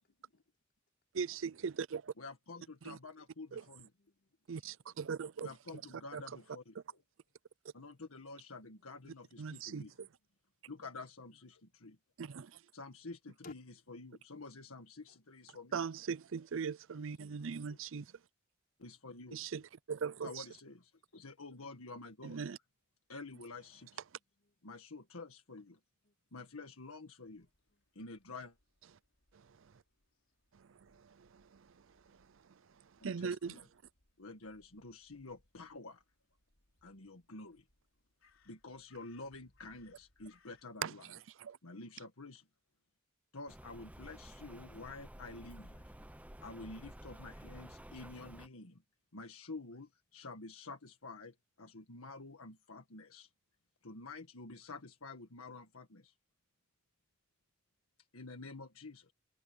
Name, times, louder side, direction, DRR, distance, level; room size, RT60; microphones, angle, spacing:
voice 1, 1.1-2.1 2.9-3.0 3.5-3.6 4.5-5.5 6.1-6.2 9.4-10.1 12.2-12.6 15.7-18.1 19.3-19.6 19.9-20.4 22.2-22.6 29.3-29.7 30.5-33.6 40.8-41.6, right 6 dB, 65° right, 0.5 m, -41 dB
voice 2, 2.2-3.9 5.4-7.0 7.7-9.9 10.7-12.0 12.7-15.8 18.8-19.4 20.2-22.4 23.1-23.9 24.6-25.8 26.3-27.5 27.9-28.6 33.0-33.7 34.2-36.0 36.8-37.6 38.4-41.1 41.6-42.4 43.3-45.9 46.4-48.8 49.1-53.3 53.8-56.1 58.1-59.1, left 3 dB, 90° left, 1.7 m, -49 dB
voice 3, 4.0-5.0 8.6-8.9 13.4-13.5 16.6-17.1 24.2-25.1 26.0-26.2 27.4-27.9, left 3 dB, 45° left, 5.7 m, -64 dB
Crow, 27.2-40.7, left 3 dB, 70° left, 4.2 m, -74 dB
Rain, 43.5-48.5, right 1 dB, 5° right, 0.9 m, -52 dB
head